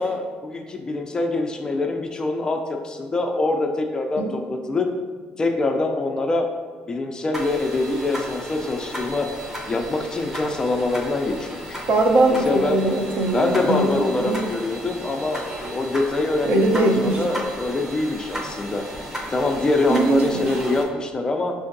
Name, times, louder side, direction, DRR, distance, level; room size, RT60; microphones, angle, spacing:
voice 1, 0.0-4.9 5.4-6.5 6.9-9.3 9.7-11.8 12.4-12.8 13.3-18.8 19.3-21.5, left 2 dB, 20° left, 4 dB, 0.3 m, -24 dB
sound 1, 7.3-20.8, equal, 10° right, 0.7 m, -35 dB
voice 2, 11.9-14.5 16.4-17.2 19.9-20.5, right 2 dB, 55° right, 2 dB, 0.6 m, -21 dB
6.0 x 2.5 x 2.6 m, 1.5 s
cardioid pair, 125°, 3 cm